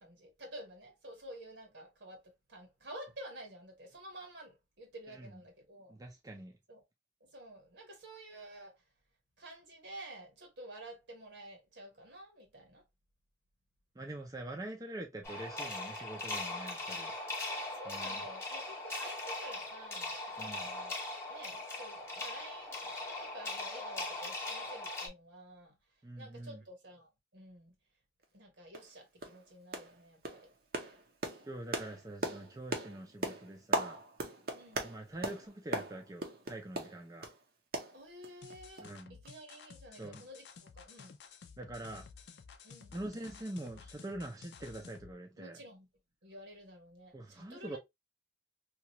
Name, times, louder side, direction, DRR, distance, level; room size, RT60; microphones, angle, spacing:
voice 1, 0.0-5.9 6.7-6.8 7.2-8.8 9.4-12.8 17.8-22.9 23.2-25.7 26.2-27.7 28.3-30.5 34.5-34.9 37.9-41.1 42.6-43.0 45.4-45.9 46.2-47.8, right 1 dB, 75° right, 1.3 m, -51 dB
voice 2, 5.1-5.4 5.9-6.5 13.9-17.1 17.9-18.2 20.4-20.7 26.0-26.6 31.4-34.0 34.8-37.3 38.8-39.2 39.9-40.3 41.6-42.1 42.9-45.6 47.1-47.8, right 1 dB, 20° right, 0.5 m, -44 dB
sound 1, 15.2-25.1, left 2 dB, 15° left, 0.8 m, -40 dB
sound 2, 28.2-28.3 28.7-28.9 29.2-29.4 29.7-30.0 30.2-37.4 37.7-38.5 38.8-38.9 39.2-39.3, right 2 dB, 55° right, 0.7 m, -39 dB
sound 3, 38.4-45.1, left 5 dB, 70° left, 0.4 m, -54 dB
2.9 x 2.4 x 2.8 m
head